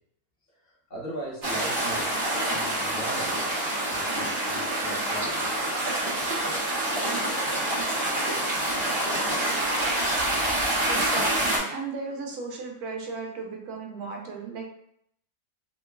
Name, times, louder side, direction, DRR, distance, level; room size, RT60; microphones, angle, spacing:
voice 1, 0.6-2.2 2.5-3.4 3.9-5.5, right 1 dB, 40° left, -7 dB, 1.0 m, -39 dB
sound 1, 1.4-11.6, right 1 dB, 40° right, 1.0 m, -27 dB
voice 2, 10.9-14.7, right 4 dB, 85° right, 1 dB, 1.1 m, -36 dB
2.9 x 2.2 x 2.3 m, 0.71 s
omnidirectional pair, 1.6 m